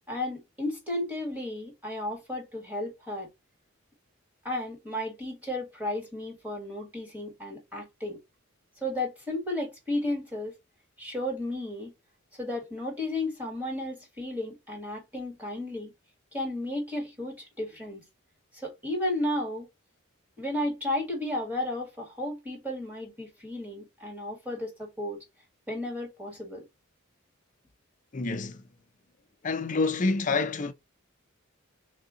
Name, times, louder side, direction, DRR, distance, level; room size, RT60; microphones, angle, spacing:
voice 1, 0.1-3.3 4.4-8.2 8.8-10.5 11.0-11.9 12.4-15.9 16.3-18.0 18.5-19.7 20.4-25.2 25.7-26.6, left 1 dB, 10° right, 1.7 m, -33 dB
voice 2, 28.1-28.6 29.4-30.7, left 3 dB, 40° left, 0.5 m, -27 dB
3.5 x 2.7 x 3.7 m
head